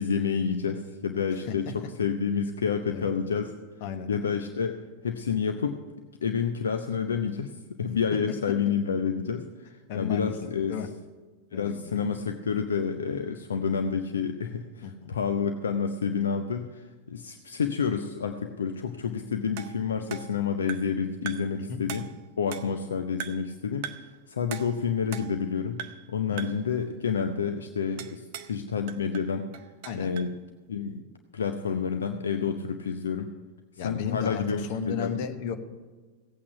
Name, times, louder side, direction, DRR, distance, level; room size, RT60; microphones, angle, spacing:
voice 1, 0.0-3.5 4.1-5.8 6.2-7.5 7.8-10.8 11.5-22.1 22.4-29.5 29.9-30.3 30.7-31.0 31.3-33.3 33.8-35.2, left 6 dB, 70° left, 6 dB, 0.7 m, -29 dB
voice 2, 9.9-10.3 10.7-10.9 11.5-12.2 14.8-15.1 21.6-21.8 26.3-26.4 29.8-30.1 33.8-34.4 34.7-35.5, left 7 dB, 50° left, 7 dB, 1.2 m, -34 dB
sound 1, 19.6-21.0 21.3-21.6 21.9-22.9 23.2-23.5 23.8-24.2 24.5-25.5 25.8-26.1 26.4-26.7 28.0-28.6 28.9-30.4, right 9 dB, 50° right, 0.6 m, -41 dB
16.5 x 8.6 x 5.8 m, 1.3 s
figure-of-eight pair, 90°, 0 cm